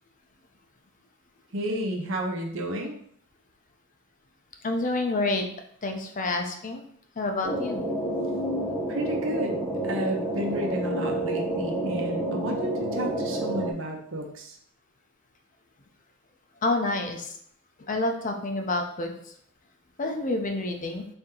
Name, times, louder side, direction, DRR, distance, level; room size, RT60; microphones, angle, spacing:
voice 1, 1.5-3.0 8.9-9.6 9.8-14.6, right 1 dB, 70° right, 2 dB, 0.8 m, -31 dB
voice 2, 4.6-5.5 5.8-6.8 7.2-7.8 16.6-17.4 17.8-19.3 20.0-21.1, left 2 dB, 40° left, 4 dB, 0.6 m, -28 dB
sound 1, 7.4-13.7, right 1 dB, ahead, 0.9 m, -29 dB
4.3 x 2.8 x 3.8 m, 0.63 s
head